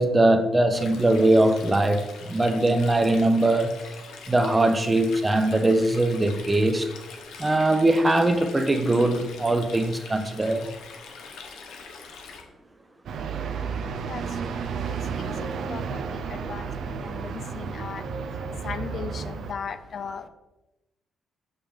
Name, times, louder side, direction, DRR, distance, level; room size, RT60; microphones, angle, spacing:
voice 1, 0.0-3.8 4.3-6.9 7.4-10.7, right 1 dB, 20° right, 0.6 m, -21 dB
Stream, 0.7-12.4, left 5 dB, 80° left, 0.9 m, -43 dB
sound 1, 13.0-19.5, right 6 dB, 65° right, 0.5 m, -32 dB
voice 2, 13.5-20.3, left 6 dB, 55° left, 0.4 m, -39 dB
5.8 x 5.2 x 3.6 m
cardioid pair, 90°, 0 cm